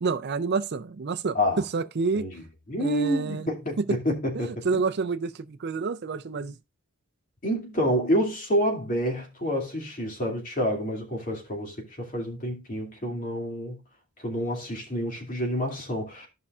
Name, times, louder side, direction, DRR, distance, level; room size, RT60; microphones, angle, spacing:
voice 1, 0.0-1.4 1.7-2.3 2.8-3.5 3.8-4.0 4.4-6.6, right 4 dB, 50° right, 0.5 m, -28 dB
voice 2, 2.1-4.8 7.4-13.8 14.2-16.3, equal, 40° left, 2.4 m, -28 dB
14.5 x 5.5 x 2.4 m
head